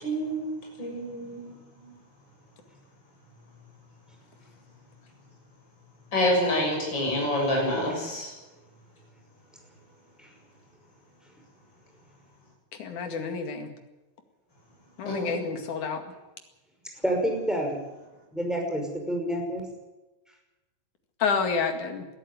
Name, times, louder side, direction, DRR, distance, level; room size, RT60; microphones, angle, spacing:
voice 1, 0.0-1.9 6.1-8.3 15.1-15.4, left 1 dB, 30° left, -1 dB, 7.8 m, -28 dB
voice 2, 12.8-13.7 15.0-16.0 21.2-22.1, left 5 dB, 60° left, 6 dB, 3.5 m, -29 dB
voice 3, 17.0-17.8 18.3-19.6, equal, ahead, 2 dB, 5.4 m, -28 dB
21.5 x 14.0 x 9.7 m, 1.1 s
omnidirectional pair, 4.1 m